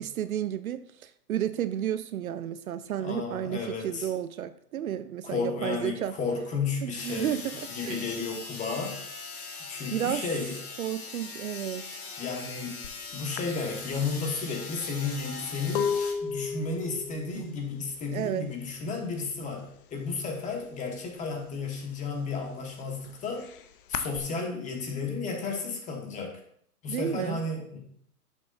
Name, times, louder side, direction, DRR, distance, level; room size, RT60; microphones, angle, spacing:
voice 1, 0.0-6.1 6.8-7.5 7.8-8.3 9.9-10.2 10.8-11.8 17.3-17.5 18.1-18.5 26.9-27.4, right 10 dB, 65° right, 13 dB, 0.6 m, -32 dB
voice 2, 3.0-4.1 5.2-7.4 7.7-9.0 9.7-10.6 12.2-12.8 13.1-16.0 16.2-19.7 19.9-23.5 23.9-26.4 26.8-27.8, left 4 dB, 15° left, 2 dB, 1.3 m, -33 dB
sound 1, 7.0-16.1, left 4 dB, 70° left, 2.0 m, -41 dB
sound 2, 12.8-13.0 13.4-19.0 19.3-19.8 20.1-21.2 21.6-24.2, left 6 dB, 35° left, 0.5 m, -34 dB
10.5 x 6.8 x 2.5 m, 0.67 s
hypercardioid pair, 130°, 46 cm